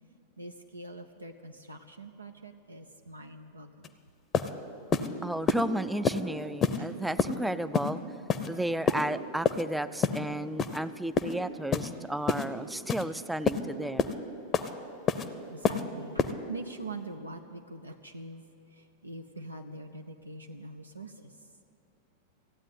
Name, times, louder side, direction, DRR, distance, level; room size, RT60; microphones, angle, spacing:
voice 1, 0.4-3.9 6.8-6.9 15.5-21.3, right 2 dB, 80° right, 5 dB, 0.6 m, -44 dB
sound 1, 3.8-3.9 4.3-4.5 4.9-5.1 5.5-5.6 6.1-6.2 6.6-6.8 7.2-7.4 7.7-7.9 8.3-8.5 8.9-9.0 9.5-9.6 10.0-10.2 10.6-10.8 11.2-11.3 11.7-11.9 12.3-12.5 12.9-13.0 13.5-13.6 14.0-14.1 14.5-14.7 15.1-15.3 15.6-15.8 16.2-16.3, left 6 dB, 25° left, 0.7 m, -27 dB
voice 2, 5.2-8.0 8.5-14.1, right 1 dB, 5° right, 14 dB, 0.4 m, -33 dB
15.0 x 8.9 x 9.2 m, 2.7 s
figure-of-eight pair, 90°, 0 cm